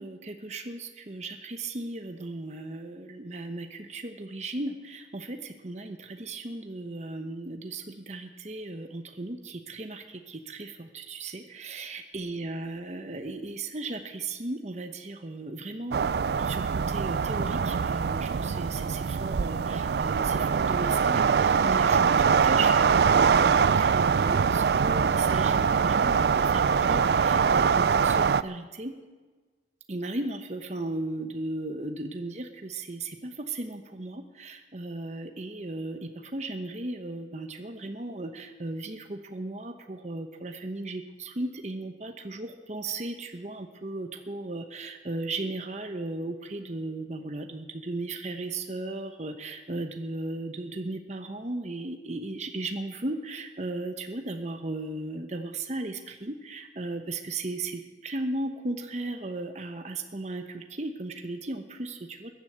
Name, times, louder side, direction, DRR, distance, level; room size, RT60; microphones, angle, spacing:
voice 1, 0.0-16.0 16.4-29.0 29.9-62.3, right 2 dB, 40° right, 6 dB, 1.0 m, -36 dB
sound 1, 15.9-28.4, right 6 dB, 65° right, 0.4 m, -23 dB
14.5 x 10.5 x 7.8 m, 1.3 s
head